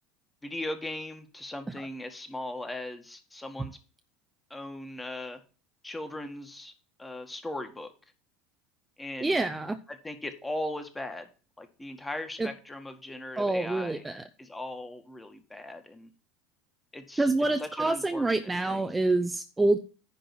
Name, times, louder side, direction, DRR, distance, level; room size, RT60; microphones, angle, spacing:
voice 1, 0.4-3.8 4.5-5.4 5.8-6.7 7.0-7.9 9.0-9.4 9.9-11.3 11.6-14.1 14.4-16.1 16.9-17.3 17.6-18.9, left 1 dB, 15° left, 7 dB, 1.8 m, -38 dB
voice 2, 9.2-9.8 12.4-12.5 13.4-14.2 17.2-19.8, right 2 dB, 15° right, 8 dB, 0.8 m, -26 dB
10.5 x 3.9 x 7.1 m, 0.35 s
hypercardioid pair, 80°, 0 cm